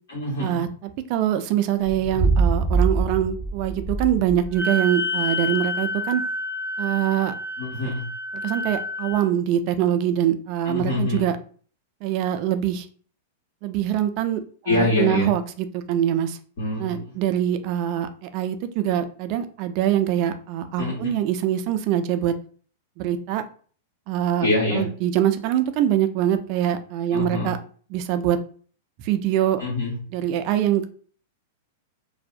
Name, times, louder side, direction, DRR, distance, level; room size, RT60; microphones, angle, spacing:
voice 1, 0.1-0.6 7.6-8.0 10.6-11.2 14.7-15.3 16.6-17.0 20.8-21.1 24.4-24.8 27.1-27.5 29.6-30.0, left 2 dB, 70° left, -6 dB, 1.3 m, -25 dB
voice 2, 1.1-6.2 6.8-7.3 8.4-11.4 12.0-12.9 13.6-16.4 16.8-22.3 23.0-23.4 24.1-27.6 27.9-28.4 29.0-29.6 30.1-30.9, right 11 dB, 50° right, 9 dB, 0.3 m, -24 dB
sound 1, 1.8-4.6, right 4 dB, 15° left, 0.7 m, -24 dB
Wind instrument woodwind instrument, 4.5-9.2, left 2 dB, 90° left, 1.4 m, -29 dB
2.6 x 2.0 x 2.4 m, 0.43 s
hypercardioid pair, 120°, 0 cm